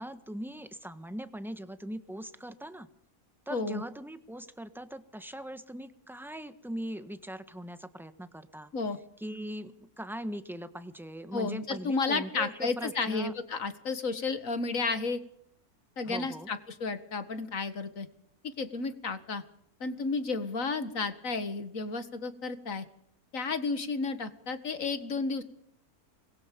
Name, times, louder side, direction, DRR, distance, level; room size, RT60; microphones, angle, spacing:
voice 1, 0.0-2.9 3.5-8.7 9.2-13.3 16.0-16.5, right 1 dB, ahead, 10 dB, 1.3 m, -40 dB
voice 2, 3.5-3.8 8.7-9.0 11.3-15.2 16.0-18.1 18.4-19.4 19.8-22.9 23.3-25.4, left 4 dB, 60° left, 11 dB, 2.1 m, -32 dB
26.0 x 21.5 x 5.3 m, 0.68 s
omnidirectional pair, 1.6 m